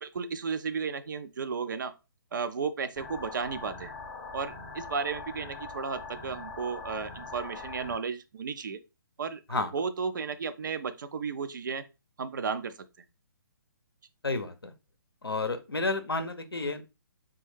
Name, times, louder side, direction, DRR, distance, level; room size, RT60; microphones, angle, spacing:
voice 1, 0.0-1.9 2.3-3.9 4.3-8.8 9.2-11.9 12.2-12.7, right 5 dB, 60° right, 0.4 m, -34 dB
sound 1, 3.0-8.0, left 3 dB, 15° left, 0.5 m, -42 dB
voice 2, 14.2-14.7 15.2-16.8, left 3 dB, 90° left, 0.6 m, -31 dB
3.3 x 2.2 x 3.1 m
figure-of-eight pair, 135°, 12 cm